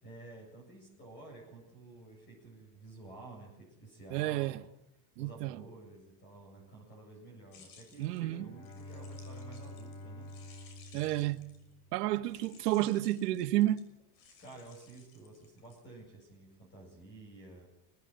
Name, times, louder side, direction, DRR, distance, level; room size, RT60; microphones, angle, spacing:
voice 1, 0.0-4.6 5.2-10.3 14.4-17.7, right 2 dB, 25° left, 7.9 m, -52 dB
voice 2, 4.1-4.6 5.2-5.6 8.0-8.5 10.9-11.4 11.9-13.8, right 15 dB, 85° right, 1.7 m, -30 dB
sound 1, 7.5-11.8 12.3-16.2, left 5 dB, 65° left, 6.2 m, -60 dB
Bowed string instrument, 8.1-12.2, left 1 dB, 40° left, 3.3 m, -48 dB
24.5 x 19.0 x 9.2 m
supercardioid pair, 170°, 47 cm